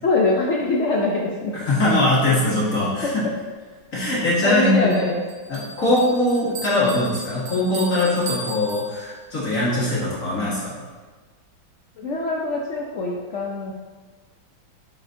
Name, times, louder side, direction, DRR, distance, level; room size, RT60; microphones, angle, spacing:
voice 1, 0.0-1.6 3.0-3.1 4.4-5.2 12.0-13.7, left 2 dB, 80° left, -2 dB, 0.6 m, -23 dB
voice 2, 1.5-3.2 3.9-5.0 5.5-10.8, left 1 dB, 45° left, -8 dB, 1.9 m, -21 dB
Bell, 4.9-9.4, right 3 dB, 75° right, 1.7 m, -37 dB
7.9 x 5.0 x 2.7 m, 1.4 s
omnidirectional pair, 2.1 m